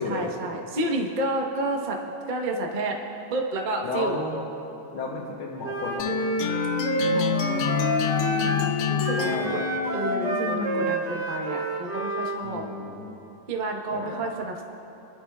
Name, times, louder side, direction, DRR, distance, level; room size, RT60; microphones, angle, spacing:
voice 1, 0.0-3.0 3.3-4.2 7.1-9.4 9.9-12.6 13.5-14.6, right 2 dB, 35° right, 1 dB, 0.7 m, -30 dB
voice 2, 3.8-4.4 4.9-6.2 9.2-9.7 12.4-13.2 13.9-14.3, left 3 dB, 70° left, -4 dB, 1.9 m, -32 dB
Wind instrument woodwind instrument, 5.6-8.7 9.0-12.4, right 2 dB, 55° right, 1.9 m, -29 dB
sound 1, 6.0-11.1, left 7 dB, 90° left, 1.6 m, -27 dB
25.0 x 11.5 x 2.3 m, 2.9 s
omnidirectional pair, 2.4 m